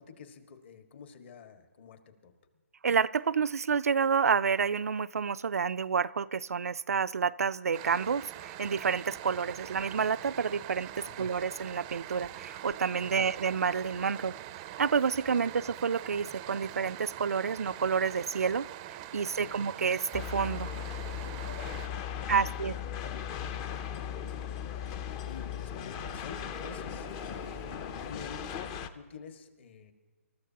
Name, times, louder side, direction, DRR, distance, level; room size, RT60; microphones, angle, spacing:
voice 1, 0.0-2.3 11.0-11.2 13.0-13.2 19.2-19.5 21.4-23.3 23.9-24.4 25.2-28.4 28.7-29.9, left 6 dB, 50° left, 7 dB, 1.7 m, -50 dB
voice 2, 2.8-10.9 11.2-14.4 14.8-18.7 19.1-20.7 22.3-22.7, right 6 dB, 85° right, 14 dB, 0.4 m, -29 dB
sound 1, 7.7-21.9, right 13 dB, 20° right, 0.5 m, -44 dB
sound 2, 20.1-28.9, left 8 dB, 25° left, 0.5 m, -37 dB
27.5 x 13.5 x 2.9 m, 1.4 s
hypercardioid pair, 155°, 8 cm